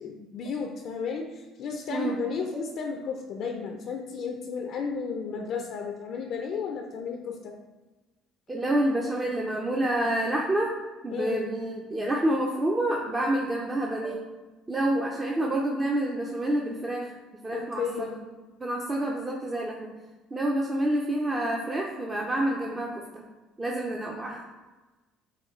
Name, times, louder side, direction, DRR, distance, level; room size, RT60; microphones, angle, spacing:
voice 1, 0.0-7.5 11.1-11.4 17.5-18.1, left 5 dB, 60° left, 3 dB, 0.4 m, -33 dB
voice 2, 1.9-2.2 2.5-2.6 8.5-10.7 11.0-14.2 14.7-17.1 17.4-18.2 18.6-19.9 20.3-23.2 23.6-24.4, right 1 dB, 25° right, -1 dB, 0.6 m, -28 dB
6.8 x 2.3 x 3.2 m, 1.2 s
hypercardioid pair, 60°, 0 cm